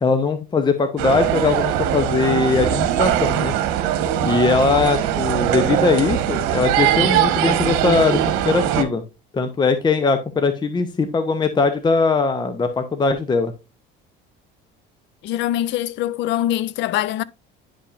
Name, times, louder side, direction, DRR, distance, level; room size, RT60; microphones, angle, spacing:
voice 1, 0.0-3.5 4.2-9.0 9.3-13.5, left 4 dB, 20° left, 0.8 m, -20 dB
sound 1, 1.0-8.8, right 11 dB, 80° right, 1.1 m, -21 dB
voice 2, 15.2-17.2, left 13 dB, 60° left, 0.5 m, -23 dB
9.9 x 5.3 x 2.5 m
cardioid pair, 120°, 21 cm